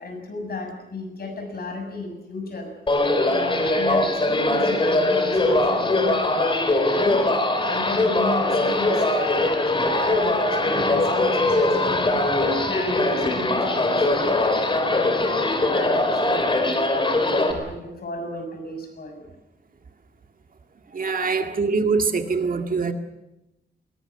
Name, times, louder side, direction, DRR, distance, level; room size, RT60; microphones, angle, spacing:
voice 1, 0.0-9.3 9.6-16.8 17.3-19.2 21.1-21.5, left 2 dB, 60° left, 6.9 m, -35 dB
sound 1, 2.9-17.5, left 2 dB, 30° left, 3.4 m, -21 dB
voice 2, 20.9-22.9, right 4 dB, 50° right, 2.0 m, -23 dB
21.0 x 19.0 x 9.8 m
wide cardioid pair, 160°, 18 cm